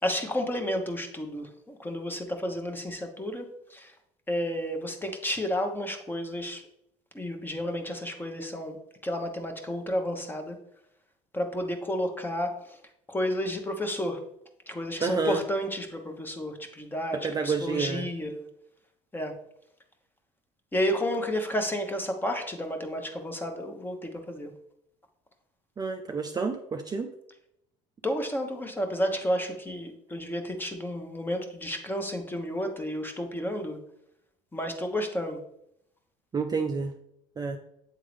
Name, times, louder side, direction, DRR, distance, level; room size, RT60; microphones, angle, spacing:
voice 1, 0.0-3.9 4.3-6.6 7.1-8.8 9.0-10.6 11.3-12.8 13.1-14.2 14.7-18.5 19.1-19.3 20.7-24.5 28.0-33.8 34.5-35.4, equal, 10° left, 4 dB, 1.1 m, -31 dB
voice 2, 15.0-15.4 17.2-18.1 25.8-27.1 36.3-36.9 37.4-37.6, right 4 dB, 25° right, 4 dB, 0.5 m, -29 dB
8.1 x 3.7 x 3.3 m, 0.77 s
supercardioid pair, 95°, 16 cm